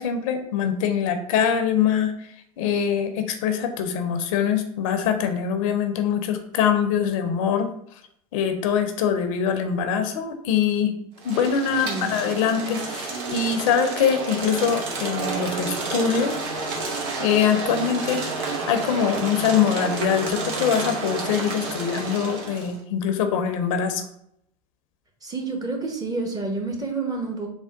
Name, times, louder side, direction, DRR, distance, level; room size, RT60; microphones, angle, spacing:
voice 1, 0.0-2.1 2.6-7.7 8.3-10.9 11.2-16.4 17.2-24.0, left 7 dB, 65° left, 7 dB, 0.6 m, -23 dB
sound 1, 11.2-22.8, right 3 dB, 60° right, 1.0 m, -30 dB
voice 2, 11.8-12.2 25.2-27.5, right 3 dB, 20° right, 2 dB, 0.9 m, -29 dB
3.6 x 2.2 x 4.4 m, 0.72 s
hypercardioid pair, 85°, 18 cm